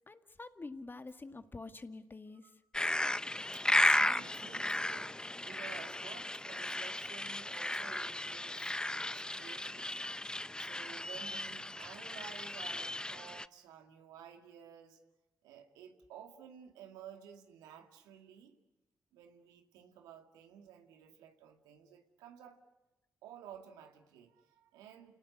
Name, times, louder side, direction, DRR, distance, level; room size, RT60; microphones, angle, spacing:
voice 1, 0.1-2.5, left 3 dB, 35° left, 9 dB, 2.1 m, -47 dB
sound 1, 2.7-13.5, left 1 dB, 15° left, 0.8 m, -35 dB
voice 2, 3.5-10.1 10.6-15.0 15.4-18.6 19.1-22.6 23.2-25.1, right 8 dB, 85° right, 5 dB, 2.2 m, -53 dB
29.5 x 19.0 x 9.4 m, 1.0 s
hypercardioid pair, 45°, 6 cm